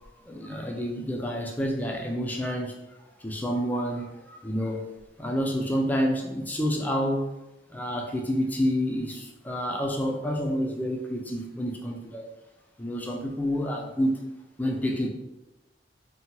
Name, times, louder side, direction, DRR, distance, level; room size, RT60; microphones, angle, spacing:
voice 1, 0.3-2.8 3.2-4.9 5.2-7.3 7.7-12.2 12.8-14.2 14.6-15.1, equal, 10° left, 0 dB, 0.3 m, -28 dB
2.7 x 2.2 x 2.8 m, 1.0 s
head